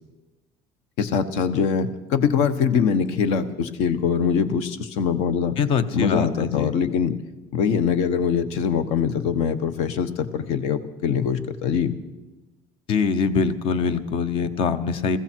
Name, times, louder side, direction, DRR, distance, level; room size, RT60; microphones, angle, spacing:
voice 1, 1.0-5.6 5.9-7.1 7.5-12.0, left 6 dB, 65° left, 12 dB, 1.2 m, -23 dB
voice 2, 5.6-6.7 12.9-15.2, left 5 dB, 50° left, 13 dB, 1.0 m, -23 dB
21.0 x 15.0 x 4.6 m, 1.1 s
cardioid pair, 165°, 12 cm